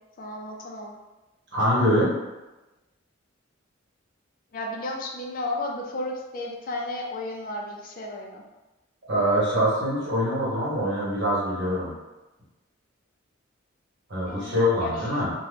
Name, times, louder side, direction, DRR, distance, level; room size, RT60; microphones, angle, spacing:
voice 1, 0.2-0.9 4.5-8.4 14.3-14.9, left 2 dB, 45° left, 0 dB, 0.4 m, -33 dB
voice 2, 1.5-2.1 9.1-11.9 14.1-15.3, equal, 60° right, -7 dB, 1.2 m, -24 dB
2.8 x 2.2 x 3.3 m, 1.1 s
head